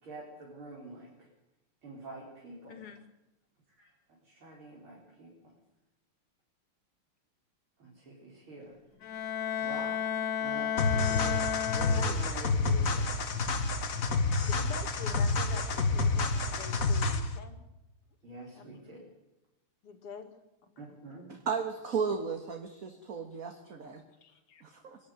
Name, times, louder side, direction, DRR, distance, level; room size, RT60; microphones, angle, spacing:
voice 1, 0.0-1.3 1.8-2.8 3.8-3.9 4.2-5.3 7.8-8.8 9.6-11.5 11.7-13.1 18.2-19.0 20.8-21.3, right 1 dB, 65° right, -4 dB, 5.5 m, -46 dB
voice 2, 2.7-3.1 12.0-12.2 14.1-17.6 18.6-18.7 19.8-20.7 23.8-24.6, left 5 dB, 85° left, 6 dB, 3.0 m, -47 dB
Bowed string instrument, 9.0-12.5, left 8 dB, 60° left, 1.8 m, -33 dB
sound 1, 10.8-17.4, left 3 dB, 45° left, 1.5 m, -29 dB
voice 3, 21.5-24.0 24.6-25.0, right 6 dB, 40° right, 5 dB, 1.9 m, -34 dB
23.5 x 12.5 x 9.5 m, 0.98 s
omnidirectional pair, 2.4 m